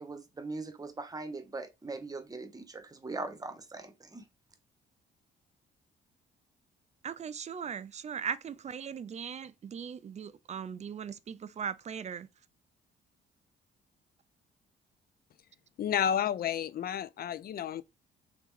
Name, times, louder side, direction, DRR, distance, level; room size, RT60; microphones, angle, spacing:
voice 1, 0.0-4.2, right 3 dB, 20° right, 0.9 m, -41 dB
voice 2, 7.0-12.3, right 7 dB, 35° right, 0.4 m, -39 dB
voice 3, 15.8-17.8, left 9 dB, 50° left, 0.4 m, -31 dB
3.6 x 3.0 x 3.7 m
cardioid pair, 90°, 20 cm